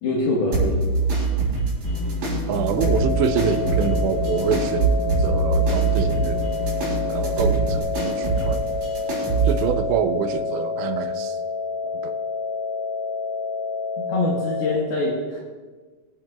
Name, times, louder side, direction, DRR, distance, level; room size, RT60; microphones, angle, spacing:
voice 1, 0.0-0.9 14.1-15.4, left 2 dB, 65° left, -4 dB, 3.2 m, -24 dB
sound 1, 0.5-9.7, right 4 dB, 55° right, 5.4 m, -25 dB
sound 2, 1.8-7.8, left 1 dB, 35° left, 3.5 m, -28 dB
voice 2, 2.5-6.4 7.1-8.7 9.4-11.4 12.0-12.2, right 7 dB, 85° right, 8 dB, 2.8 m, -26 dB
sound 3, 2.8-14.8, left 4 dB, 85° left, 2.9 m, -28 dB
25.0 x 8.9 x 2.4 m, 1.4 s
omnidirectional pair, 5.2 m